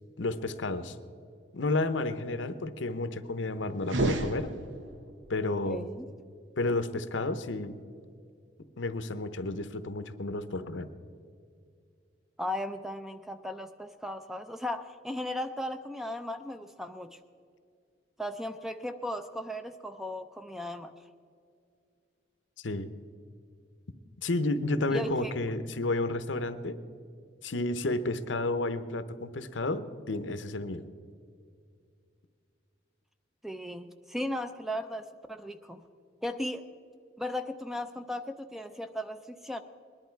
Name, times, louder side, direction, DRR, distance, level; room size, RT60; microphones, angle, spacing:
voice 1, 0.2-1.0 1.5-4.5 5.3-5.8 6.6-7.8 8.8-10.9 22.6-22.9 24.2-26.8 27.4-30.8, left 2 dB, 85° left, 11 dB, 0.8 m, -31 dB
sound 1, 3.8-5.1, right 2 dB, 85° right, 1.0 m, -31 dB
voice 2, 5.7-6.1 12.4-17.2 18.2-20.9 24.9-25.3 33.4-35.8 36.2-36.7 37.2-39.6, left 1 dB, ahead, 9 dB, 0.5 m, -36 dB
20.5 x 11.0 x 4.6 m, 2.3 s
head